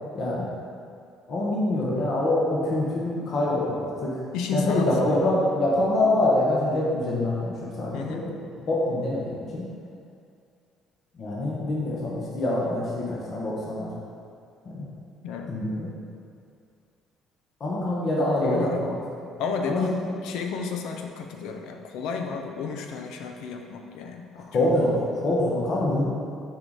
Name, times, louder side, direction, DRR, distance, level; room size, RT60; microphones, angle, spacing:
voice 1, 0.1-0.5 1.3-4.2 4.5-8.3 8.7-9.6 11.2-13.9 14.7-14.9 15.5-15.9 17.6-19.0 19.6-19.8 24.3-26.0, left 1 dB, 35° left, -5 dB, 1.2 m, -25 dB
voice 2, 4.3-4.9 7.9-8.3 15.2-15.6 18.4-19.0 19.4-24.7, left 5 dB, 80° left, 3 dB, 0.7 m, -32 dB
6.5 x 5.0 x 4.1 m, 2.4 s
cardioid pair, 175°, 0 cm